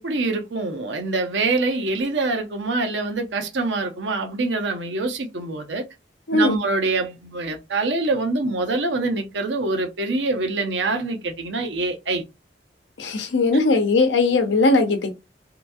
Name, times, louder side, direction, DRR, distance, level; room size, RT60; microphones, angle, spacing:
voice 1, 0.0-5.8 6.3-12.2, right 3 dB, 85° right, 0.7 m, -25 dB
voice 2, 6.3-6.6 13.0-15.1, left 3 dB, 85° left, 0.7 m, -19 dB
2.9 x 2.3 x 2.6 m
head